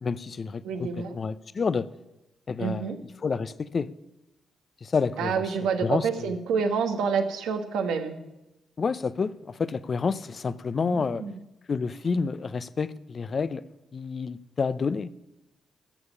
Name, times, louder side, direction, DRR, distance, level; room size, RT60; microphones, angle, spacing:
voice 1, 0.0-1.9 2.5-2.9 3.2-3.9 4.8-5.4 5.8-6.3 8.8-11.2 11.7-13.7 13.9-15.2, left 5 dB, 50° left, 0.6 m, -29 dB
voice 2, 0.6-1.1 2.6-3.0 5.2-8.2 10.8-11.4, right 6 dB, 85° right, 1.3 m, -28 dB
13.0 x 7.1 x 9.7 m
supercardioid pair, 55°, 0 cm